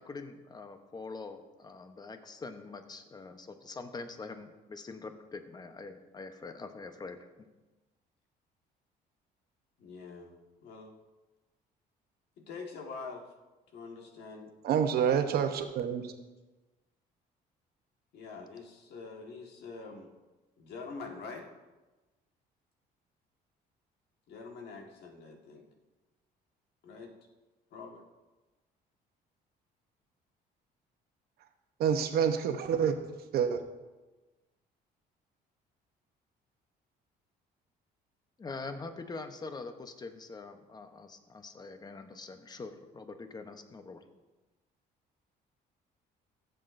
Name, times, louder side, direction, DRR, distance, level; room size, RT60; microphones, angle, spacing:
voice 1, 0.0-7.3 38.4-44.1, left 3 dB, 25° left, 8 dB, 0.9 m, -44 dB
voice 2, 9.8-10.3 10.6-10.9 12.4-13.2 13.7-14.5 18.1-20.1 20.6-21.5 24.3-25.7 26.8-27.1 27.7-28.0, left 4 dB, 75° left, 1 dB, 1.7 m, -45 dB
voice 3, 14.6-16.1 31.8-33.0 33.3-33.6, right 8 dB, 65° right, 7 dB, 0.9 m, -27 dB
15.5 x 7.8 x 2.6 m, 1.2 s
cardioid pair, 110°, 17 cm